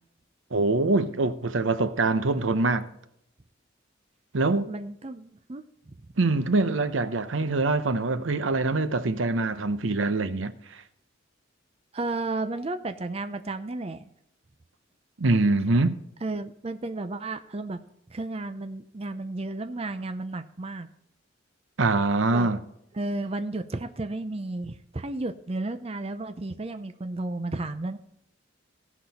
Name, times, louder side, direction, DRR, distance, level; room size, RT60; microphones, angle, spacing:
voice 1, 0.5-2.9 4.3-4.7 6.2-10.8 15.2-16.0 21.8-22.6, right 3 dB, 80° right, 0.8 m, -24 dB
voice 2, 4.7-5.9 11.9-14.0 16.2-17.8 18.1-20.9 22.3-22.5 22.9-28.0, right 2 dB, 30° right, 0.5 m, -33 dB
17.0 x 6.1 x 4.1 m
head